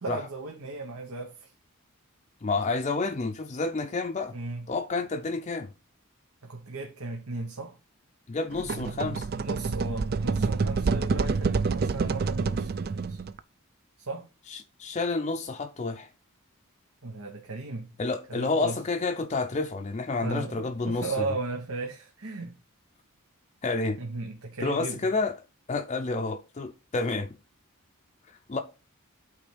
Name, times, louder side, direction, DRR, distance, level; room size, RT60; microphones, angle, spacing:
voice 1, 0.0-1.5 4.3-4.7 6.4-7.8 9.4-13.2 14.0-14.3 17.0-17.9 18.3-18.8 20.2-22.5 24.0-25.1, right 3 dB, 85° right, 1.1 m, -36 dB
voice 2, 2.4-4.3 4.7-5.7 8.3-9.3 14.5-16.1 18.0-21.3 23.6-24.0 24.6-25.4 25.7-27.4 28.3-28.6, left 3 dB, 30° left, 0.5 m, -29 dB
sound 1, 8.5-13.4, right 4 dB, 45° right, 0.4 m, -28 dB
8.5 x 3.3 x 5.0 m
head